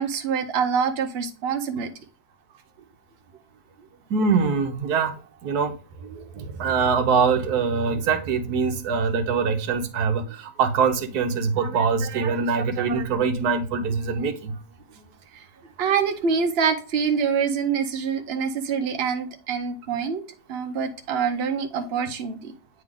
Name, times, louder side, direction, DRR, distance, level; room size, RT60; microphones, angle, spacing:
voice 1, 0.0-1.9 15.3-15.4 15.8-20.2 20.5-22.5, right 6 dB, 45° right, 0.9 m, -25 dB
voice 2, 4.1-5.1 5.4-5.8 6.0-14.6, right 5 dB, 70° right, 1.3 m, -23 dB
8.8 x 3.3 x 3.7 m
omnidirectional pair, 1.8 m